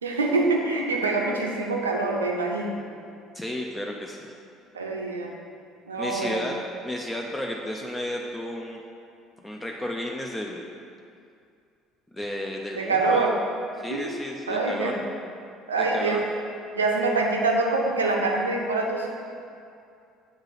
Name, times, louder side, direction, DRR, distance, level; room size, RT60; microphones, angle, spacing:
voice 1, 0.0-2.8 4.7-5.3 5.9-6.5 12.7-13.4 13.9-14.1 14.5-15.0 15.7-16.3 16.7-19.1, right 3 dB, 80° right, 0 dB, 0.5 m, -25 dB
voice 2, 3.3-4.3 6.0-6.6 6.8-8.8 9.4-10.7 12.1-13.3 13.8-14.9 15.9-16.2, left 1 dB, 10° left, 0 dB, 0.5 m, -32 dB
7.1 x 3.8 x 4.0 m, 2.4 s
figure-of-eight pair, 55°, 0 cm